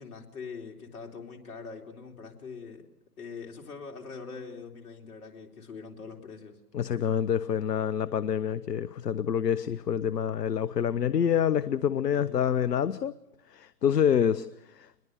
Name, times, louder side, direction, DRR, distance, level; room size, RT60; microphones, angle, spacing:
voice 1, 0.0-2.9 3.2-6.6 12.1-12.5, left 5 dB, 60° left, 2 dB, 3.8 m, -43 dB
voice 2, 6.7-13.1 13.5-14.5 14.7-14.9, left 8 dB, 75° left, 17 dB, 0.9 m, -27 dB
23.0 x 21.5 x 6.8 m, 0.84 s
figure-of-eight pair, 130°, 48 cm